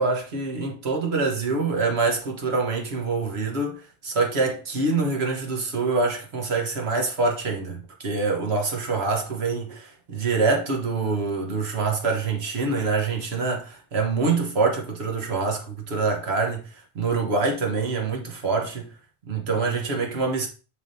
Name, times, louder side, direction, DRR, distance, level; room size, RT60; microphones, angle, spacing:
voice 1, 0.0-16.6 16.9-18.9 19.3-20.5, right 4 dB, 80° right, 1.5 m, -25 dB
9.7 x 3.6 x 2.7 m
omnidirectional pair, 1.1 m